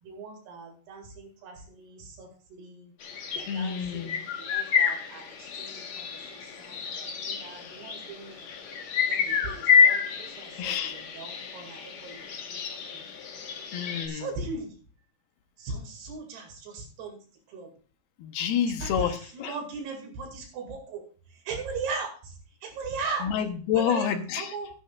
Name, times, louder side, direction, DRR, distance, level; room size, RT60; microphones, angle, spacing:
voice 1, 0.0-2.9 3.3-8.5 9.1-13.0 14.1-14.7 15.6-17.2 17.5-17.7 18.8-21.0 21.3-23.3 23.7-24.7, right 4 dB, 80° right, 2 dB, 4.3 m, -39 dB
sound 1, 3.0-14.1, left 6 dB, 55° left, 2.1 m, -28 dB
voice 2, 3.5-4.2 10.6-11.0 11.4-11.5 13.7-14.3 18.2-19.6 23.2-24.5, left 8 dB, 75° left, 7 dB, 2.9 m, -29 dB
14.5 x 11.0 x 2.4 m, 0.40 s
omnidirectional pair, 4.6 m